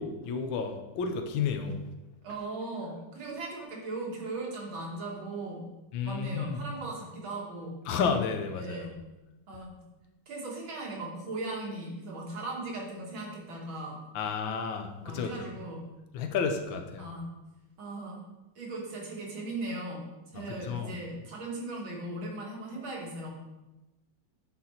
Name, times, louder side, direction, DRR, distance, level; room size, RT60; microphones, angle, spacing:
voice 1, 0.0-1.8 5.9-6.6 7.9-8.8 14.1-15.5 16.1-17.1 20.3-21.0, left 5 dB, 75° left, 5 dB, 1.5 m, -31 dB
voice 2, 2.2-5.6 6.0-7.8 8.5-8.9 9.5-9.8 10.3-14.0 15.0-15.8 17.0-17.2 17.8-18.2 18.6-20.1 20.3-23.3, right 2 dB, 85° right, -2 dB, 2.4 m, -38 dB
9.5 x 4.0 x 4.3 m, 1.0 s
omnidirectional pair, 2.1 m